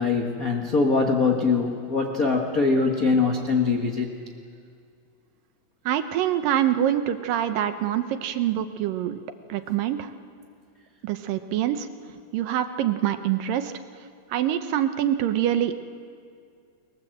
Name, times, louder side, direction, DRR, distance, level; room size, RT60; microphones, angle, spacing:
voice 1, 0.0-4.1, left 4 dB, 60° left, 1 dB, 0.8 m, -22 dB
voice 2, 5.9-9.2 9.5-10.1 11.0-11.9 12.3-13.7 14.3-15.8, right 11 dB, 75° right, 8 dB, 2.4 m, -25 dB
30.0 x 21.0 x 7.8 m, 2.3 s
omnidirectional pair, 4.3 m